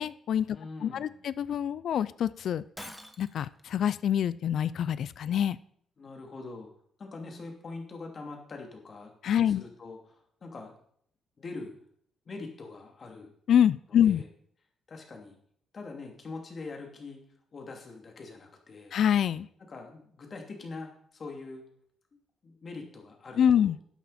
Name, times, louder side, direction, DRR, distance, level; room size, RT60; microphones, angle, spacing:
voice 1, 0.0-0.5 0.8-2.9 3.2-5.6 9.2-9.6 13.5-14.2 18.9-19.5 23.4-23.8, left 9 dB, 65° left, 17 dB, 0.3 m, -26 dB
voice 2, 0.5-1.3 6.0-6.7 7.0-9.1 9.4-10.7 11.4-11.8 12.2-13.3 13.9-14.3 14.9-15.4 15.7-17.2 17.5-18.9 19.7-21.6 22.1-23.7, left 3 dB, 45° left, 2 dB, 2.7 m, -43 dB
Shatter, 2.8-3.6, equal, ahead, 1.1 m, -45 dB
11.5 x 8.7 x 4.2 m, 0.65 s
cardioid pair, 90°, 0 cm